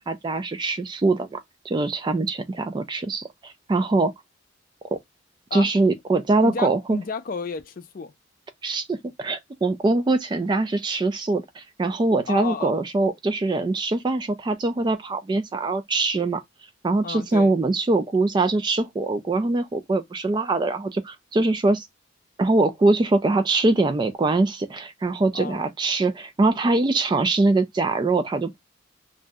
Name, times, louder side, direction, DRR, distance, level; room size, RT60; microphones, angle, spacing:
voice 1, 0.0-1.4 1.7-4.1 4.9-5.0 5.5-7.0 8.6-16.4 16.8-21.9 22.4-28.6, right 2 dB, 25° right, 0.3 m, -23 dB
voice 2, 6.4-8.1 12.3-12.8 17.0-17.5 25.3-25.6, left 4 dB, 45° left, 0.4 m, -32 dB
2.6 x 2.0 x 3.4 m
head